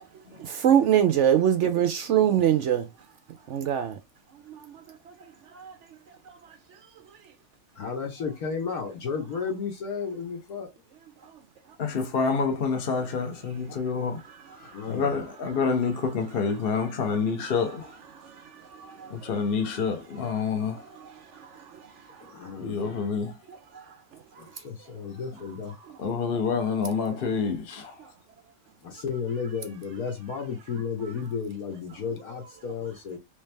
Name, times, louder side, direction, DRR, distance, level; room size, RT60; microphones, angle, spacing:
voice 1, 0.4-2.9 3.5-4.0 4.5-4.8 5.5-5.7 18.2-18.3 18.8-19.1 21.0-21.1 21.6-21.7 23.7-23.8, right 10 dB, 70° right, 0.7 m, -23 dB
voice 2, 7.8-10.7 14.7-15.2 22.2-23.1 24.4-25.8 28.8-33.2, left 6 dB, 65° left, 1.4 m, -33 dB
voice 3, 11.8-14.2 14.6-17.9 19.1-20.8 22.6-23.4 26.0-27.9, left 5 dB, 45° left, 0.9 m, -27 dB
3.4 x 3.2 x 3.3 m
omnidirectional pair, 1.7 m